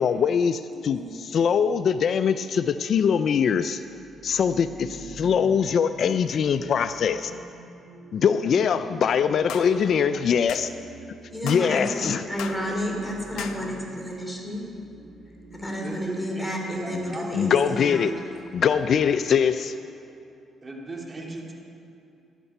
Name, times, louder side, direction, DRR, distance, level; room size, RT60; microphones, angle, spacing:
voice 1, 0.0-3.8 4.2-7.4 8.1-10.7 11.4-12.2 16.9-18.1 18.5-19.7, left 7 dB, 60° left, 11 dB, 0.4 m, -23 dB
voice 2, 0.7-1.2 11.3-14.6 15.5-18.1, equal, 10° left, -1 dB, 3.3 m, -31 dB
sound 1, 0.8-19.2, right 3 dB, 65° right, 1.6 m, -48 dB
sound 2, 9.5-9.7 10.5-10.7 11.5-11.7 12.4-12.6 13.4-13.6, left 9 dB, 85° left, 0.8 m, -35 dB
voice 3, 15.8-17.5 20.6-21.5, right 2 dB, 30° right, -1 dB, 2.4 m, -37 dB
16.0 x 11.0 x 5.5 m, 2.6 s
cardioid pair, 90°, 0 cm